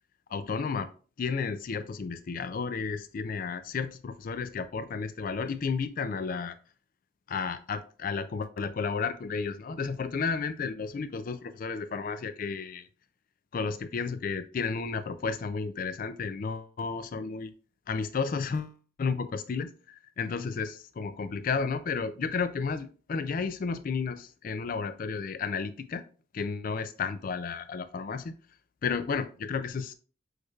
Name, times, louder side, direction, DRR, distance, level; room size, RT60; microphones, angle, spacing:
voice 1, 0.3-0.9 1.2-6.6 7.3-12.9 13.5-17.5 17.9-26.0 26.3-28.3 28.8-29.9, left 5 dB, 40° left, 0.3 m, -32 dB
6.3 x 3.2 x 2.3 m
head